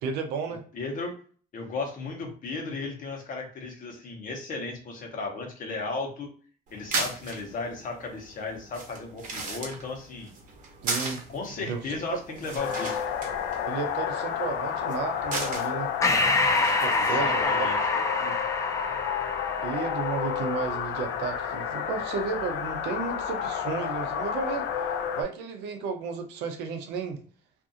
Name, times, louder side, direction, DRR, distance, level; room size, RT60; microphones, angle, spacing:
voice 1, 0.0-0.6 10.8-11.2 11.6-11.8 13.7-15.9 16.8-17.7 18.1-18.4 19.6-24.7 25.2-27.2, right 5 dB, 85° right, 5 dB, 0.6 m, -33 dB
voice 2, 0.7-1.2 1.5-6.3 6.7-10.3 11.3-13.0 16.9-17.8, left 3 dB, 50° left, 2 dB, 0.9 m, -35 dB
sound 1, 6.7-17.4, right 3 dB, 50° right, 0.9 m, -38 dB
sound 2, 12.6-25.2, left 8 dB, 85° left, 0.5 m, -31 dB
Breathing, 16.0-20.9, left 3 dB, 20° left, 0.4 m, -27 dB
2.6 x 2.4 x 2.6 m, 0.42 s
cardioid pair, 110°, 17 cm